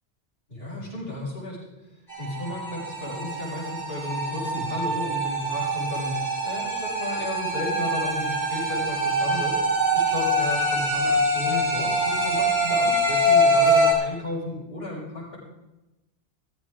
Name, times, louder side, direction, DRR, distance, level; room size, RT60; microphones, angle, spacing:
voice 1, 0.5-1.6 2.2-9.6 9.9-15.4, left 2 dB, 65° left, -11 dB, 6.3 m, -33 dB
sound 1, 2.1-13.9, right 1 dB, 45° left, 7.0 m, -24 dB
16.5 x 14.5 x 3.8 m, 0.99 s
omnidirectional pair, 1.1 m